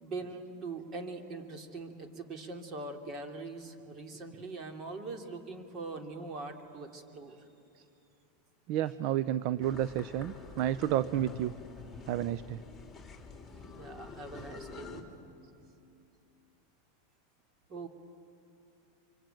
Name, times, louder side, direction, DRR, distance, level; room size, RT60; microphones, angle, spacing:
voice 1, 0.0-7.4 10.9-11.0 13.8-15.1 17.7-17.9, right 3 dB, 35° right, 4 dB, 2.8 m, -42 dB
voice 2, 8.7-11.5 12.1-12.6, right 11 dB, 55° right, 15 dB, 0.6 m, -31 dB
sound 1, 9.6-15.0, left 4 dB, 10° left, 3.3 m, -48 dB
25.0 x 25.0 x 9.0 m, 2.6 s
supercardioid pair, 130°, 0 cm